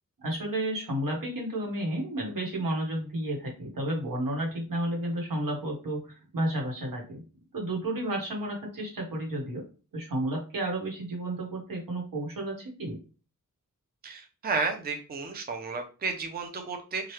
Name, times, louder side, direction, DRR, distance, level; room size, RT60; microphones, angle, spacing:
voice 1, 0.2-7.2 7.5-9.6 9.9-13.0, right 1 dB, 80° right, 0 dB, 1.2 m, -32 dB
voice 2, 14.0-17.1, right 4 dB, 30° right, 5 dB, 0.4 m, -32 dB
3.1 x 2.3 x 3.0 m, 0.35 s
wide cardioid pair, 110°, 33 cm